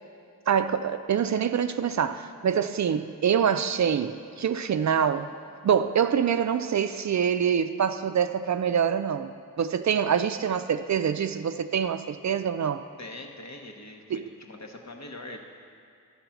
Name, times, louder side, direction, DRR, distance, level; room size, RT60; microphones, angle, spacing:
voice 1, 0.5-5.3 5.6-9.3 9.6-12.8 14.1-14.2, right 8 dB, 55° right, 10 dB, 0.4 m, -25 dB
voice 2, 13.0-15.4, left 2 dB, 50° left, 2 dB, 1.1 m, -42 dB
11.0 x 3.9 x 7.1 m, 2.5 s
cardioid pair, 50°, 35 cm